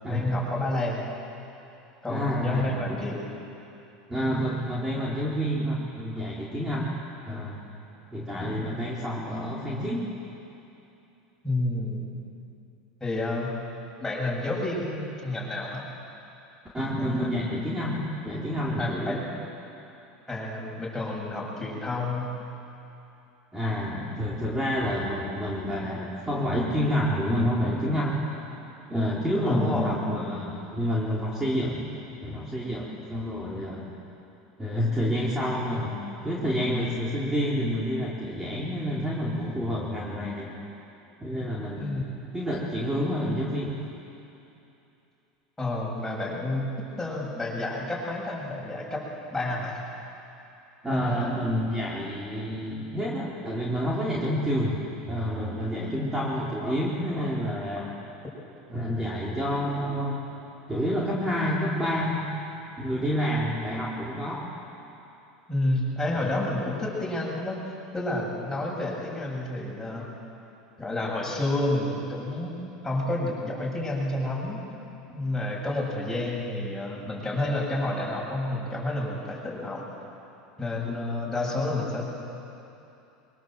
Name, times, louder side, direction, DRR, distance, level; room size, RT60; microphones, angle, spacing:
voice 1, 0.1-1.0 2.0-3.2 11.4-12.1 13.0-13.5 14.0-15.9 17.0-17.4 18.8-19.2 20.3-22.3 29.5-29.9 41.8-42.0 45.6-49.0 49.3-49.8 50.9-51.4 65.5-67.6 67.9-70.1 70.8-72.5 72.8-74.6 75.1-79.8 80.6-82.1, left 2 dB, 10° left, -4 dB, 7.9 m, -30 dB
voice 2, 2.1-3.0 4.1-6.9 7.2-7.6 8.1-10.1 16.7-19.2 23.5-28.2 28.9-31.8 32.2-33.9 34.6-40.5 41.2-41.8 42.3-43.7 50.8-54.8 55.1-57.9 58.7-60.2 60.7-62.2 62.8-64.5 66.2-66.3 70.0-70.1, equal, 15° right, -5 dB, 4.4 m, -28 dB
23.0 x 22.5 x 7.9 m, 2.9 s
supercardioid pair, 105°, 4 cm